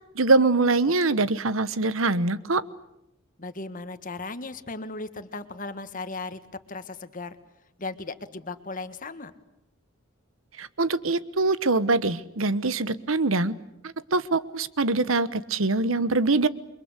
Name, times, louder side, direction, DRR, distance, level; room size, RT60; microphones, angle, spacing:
voice 1, 0.1-2.6 10.6-13.5 13.8-16.5, right 3 dB, 80° right, 15 dB, 1.2 m, -23 dB
voice 2, 3.4-6.4 6.7-7.4 7.8-9.3, left 3 dB, 40° left, 10 dB, 1.7 m, -36 dB
29.0 x 24.0 x 8.3 m, 0.83 s
head